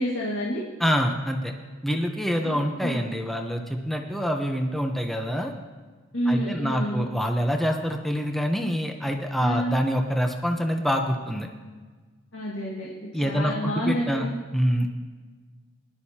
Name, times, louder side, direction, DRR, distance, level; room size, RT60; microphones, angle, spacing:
voice 1, 0.0-0.6 2.4-3.1 6.1-7.1 9.4-9.8 12.3-12.9 13.2-14.3, equal, 80° left, -4 dB, 2.0 m, -28 dB
voice 2, 0.8-1.5 1.8-5.5 6.3-11.5 13.1-14.3 14.5-14.9, equal, ahead, 3 dB, 0.8 m, -26 dB
20.5 x 11.5 x 2.9 m, 1.4 s
head